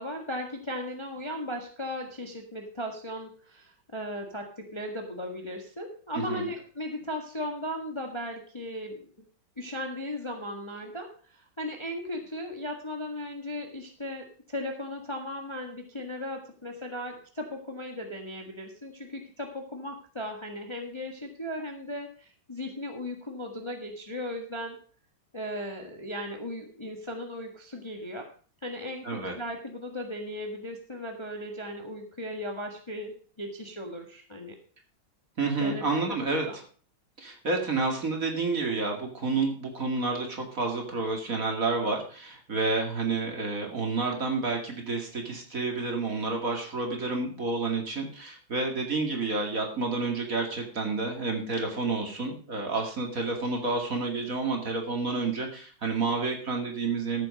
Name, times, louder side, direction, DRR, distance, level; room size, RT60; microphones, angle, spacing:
voice 1, 0.0-9.1 9.6-24.8 25.3-28.3 28.6-34.6 35.6-36.6, left 1 dB, 15° left, 3 dB, 1.4 m, -37 dB
voice 2, 35.4-36.5 37.2-57.3, right 3 dB, 40° right, 2 dB, 2.6 m, -29 dB
14.0 x 7.6 x 5.1 m, 0.42 s
omnidirectional pair, 2.3 m